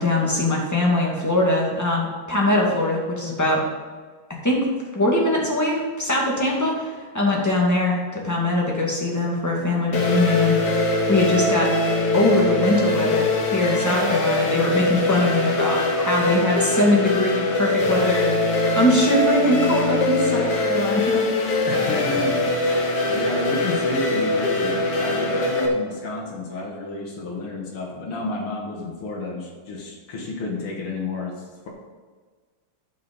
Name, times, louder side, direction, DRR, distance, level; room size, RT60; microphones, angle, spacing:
voice 1, 0.0-3.6 4.4-4.7 4.9-10.6 11.1-11.7 12.1-21.6, left 1 dB, 10° left, -3 dB, 2.0 m, -22 dB
sound 1, 9.9-25.7, left 2 dB, 60° left, 1.9 m, -22 dB
voice 2, 21.7-31.4, left 2 dB, 80° left, -2 dB, 2.7 m, -30 dB
12.5 x 5.9 x 5.4 m, 1.5 s
omnidirectional pair, 2.4 m